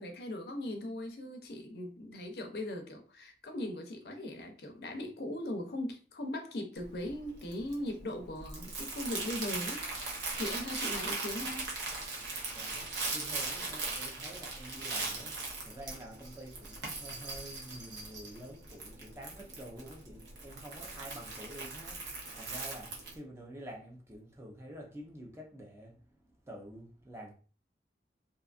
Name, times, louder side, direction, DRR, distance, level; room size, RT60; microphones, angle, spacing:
voice 1, 0.0-11.7, left 1 dB, 60° left, 0.5 m, -39 dB
Crumpling crinkling, 6.8-23.2, right 3 dB, 90° right, 0.8 m, -39 dB
voice 2, 12.5-27.3, equal, 15° right, 0.5 m, -48 dB
2.7 x 2.3 x 2.4 m
head